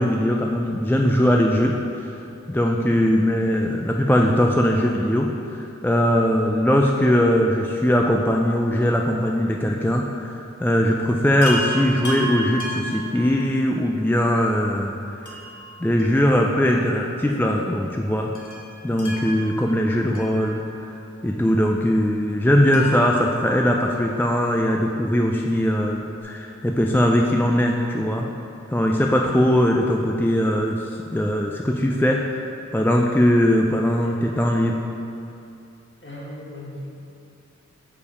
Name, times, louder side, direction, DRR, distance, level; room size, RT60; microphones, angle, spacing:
voice 1, 0.0-2.2 2.5-15.4 15.8-18.3 18.8-20.9 21.2-28.3 28.7-34.8, equal, 5° left, 0 dB, 0.4 m, -20 dB
Chime, 11.4-13.8 15.2-16.8 17.0-17.1 18.3-21.0 22.7-24.3 25.9-26.0 26.2-26.3, right 1 dB, 85° left, 0.9 m, -34 dB
voice 2, 36.0-36.9, left 1 dB, 40° left, -5 dB, 1.5 m, -36 dB
5.2 x 4.8 x 4.8 m, 2.7 s
wide cardioid pair, 40°, 29 cm